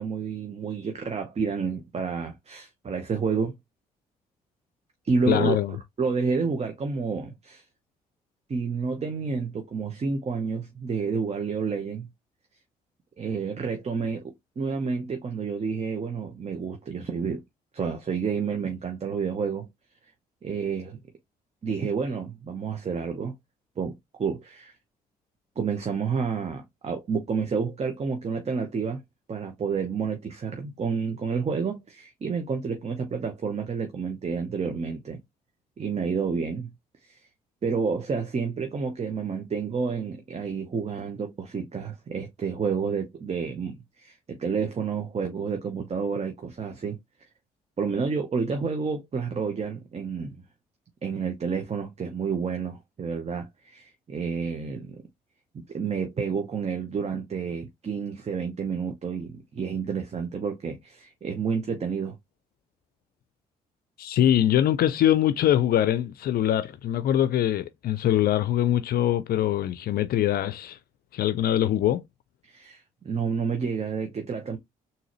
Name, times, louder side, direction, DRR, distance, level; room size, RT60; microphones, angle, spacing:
voice 1, 0.0-3.5 5.0-5.6 6.0-7.6 8.5-12.1 13.2-17.4 17.7-19.7 20.4-21.0 21.6-23.3 23.8-24.7 25.6-29.0 29.3-35.2 35.8-36.7 37.0-37.2 37.6-47.0 47.8-50.4 51.0-55.0 55.5-62.2 72.4-74.6, right 5 dB, 40° right, 0.9 m, -30 dB
voice 2, 5.3-5.8 64.0-70.8 71.1-72.0, left 11 dB, 60° left, 0.4 m, -23 dB
3.8 x 2.7 x 3.0 m
supercardioid pair, 55°, 17 cm